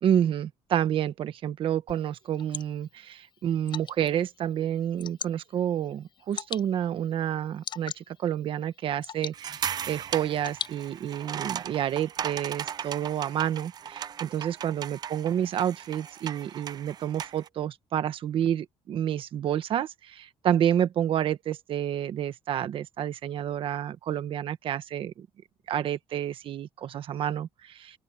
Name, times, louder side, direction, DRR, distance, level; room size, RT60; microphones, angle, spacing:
voice 1, 0.0-25.3 25.7-28.0, right 10 dB, 50° right, 1.3 m, -29 dB
Water / Drip, 1.9-11.3, left 8 dB, 45° left, 7.4 m, -43 dB
sound 1, 9.3-17.5, right 8 dB, 35° right, 0.5 m, -37 dB
open air
cardioid pair, 165°, 11 cm